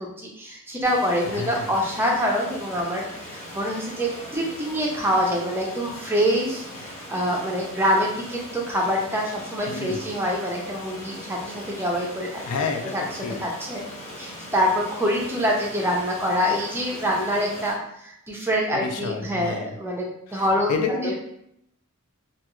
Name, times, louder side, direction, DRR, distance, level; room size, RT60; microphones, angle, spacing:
voice 1, 0.0-12.4 12.8-13.0 13.4-13.8 14.2-20.8 21.0-21.1, equal, 10° right, -1 dB, 0.4 m, -25 dB
Stream, 0.8-17.7, left 1 dB, 30° left, 0.7 m, -40 dB
voice 2, 1.2-1.7 9.7-10.0 12.4-12.9 13.2-13.4 18.7-19.8 20.3-21.2, left 4 dB, 85° left, 4 dB, 0.4 m, -29 dB
2.3 x 2.2 x 2.9 m, 0.76 s
head